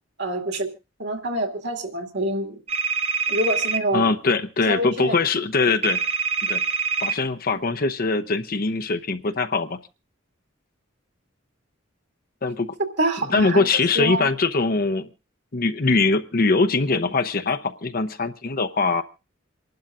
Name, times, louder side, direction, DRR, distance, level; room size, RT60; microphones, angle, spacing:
voice 1, 0.2-0.7 1.0-2.6 3.3-4.1 4.7-5.2 13.0-13.6 14.0-14.3, right 1 dB, 60° right, 4 dB, 2.4 m, -26 dB
sound 1, 2.7-3.8 5.8-7.2, right 6 dB, 30° right, 0.8 m, -24 dB
voice 2, 3.9-6.1 6.4-6.6 7.0-9.8 12.4-12.7 13.3-15.1 15.5-19.0, left 3 dB, 50° left, 9 dB, 0.8 m, -22 dB
28.0 x 11.5 x 2.5 m, 0.29 s
head